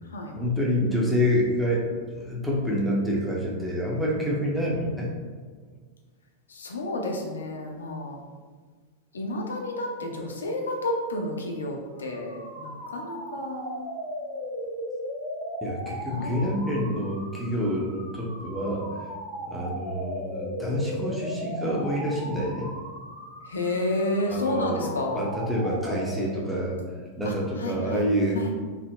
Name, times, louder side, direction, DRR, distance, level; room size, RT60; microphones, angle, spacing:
voice 1, 0.4-5.1 15.6-18.9 19.5-22.7 24.3-24.8 25.1-26.8 27.2-28.4, equal, ahead, -5 dB, 0.6 m, -27 dB
voice 2, 6.5-8.2 9.1-13.7 16.1-16.4 23.5-25.2 27.2-28.5, left 1 dB, 70° left, 1 dB, 0.4 m, -31 dB
sound 1, 12.0-26.7, equal, 55° right, 1.2 m, -37 dB
3.5 x 2.0 x 2.2 m, 1.5 s
figure-of-eight pair, 90°, 0 cm